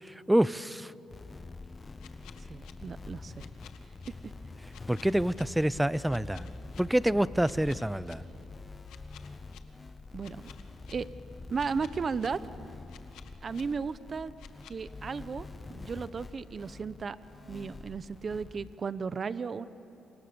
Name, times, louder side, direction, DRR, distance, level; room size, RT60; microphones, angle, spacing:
voice 1, 0.0-0.9 4.9-6.5 6.8-8.2, right 1 dB, 5° right, 18 dB, 0.6 m, -27 dB
sound 1, 1.1-18.8, left 3 dB, 25° left, 0.8 m, -46 dB
sound 2, 2.0-2.7 3.4-4.1 4.7-5.4 6.1-6.8 7.4-8.1 8.9-9.6 10.2-10.9 11.5-12.3 12.9-13.6 14.4-14.8, left 11 dB, 85° left, 1.5 m, -53 dB
voice 2, 2.5-3.5 4.1-4.3 10.1-10.5 10.9-11.1 11.5-12.4 13.4-14.3 14.7-17.2 17.5-19.7, right 5 dB, 40° right, 14 dB, 0.9 m, -35 dB
sound 3, 5.1-9.1, right 4 dB, 85° right, 5.7 m, -58 dB
30.0 x 26.5 x 7.0 m, 2.8 s
cardioid pair, 90°, 0 cm